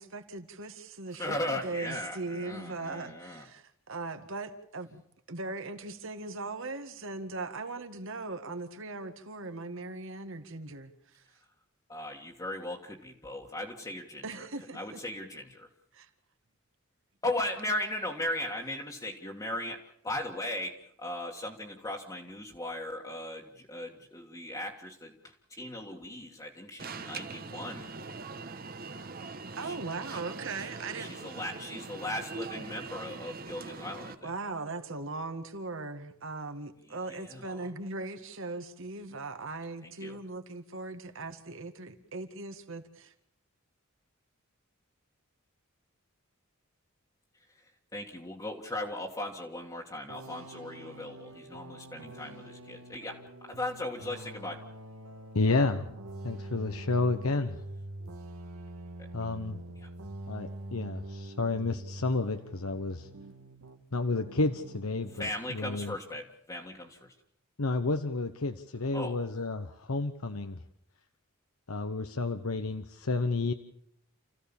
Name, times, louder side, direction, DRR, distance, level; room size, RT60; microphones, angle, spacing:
voice 1, 0.0-5.0 5.3-11.2 14.2-15.0 15.9-16.1 29.5-31.1 34.2-43.1, right 3 dB, 65° right, 7 dB, 2.0 m, -39 dB
voice 2, 1.1-3.5 11.9-14.5 14.7-15.7 17.2-27.9 29.6-29.8 30.1-30.2 30.6-30.7 31.0-34.3 37.1-37.7 39.8-40.2 47.9-54.6 59.0-59.1 59.8-59.9 65.1-67.1 68.9-69.2, left 1 dB, 15° left, -1 dB, 1.7 m, -38 dB
Alarm, 26.8-34.1, right 4 dB, 45° right, 1.2 m, -42 dB
sound 1, 50.1-63.8 64.1-65.3, right 1 dB, 85° right, 2.0 m, -45 dB
voice 3, 55.3-55.9 56.2-57.6 59.1-59.6 60.3-63.1 63.9-65.9 67.6-70.6 71.7-73.5, left 3 dB, 85° left, 7 dB, 1.1 m, -31 dB
29.0 x 15.5 x 7.2 m, 0.70 s
head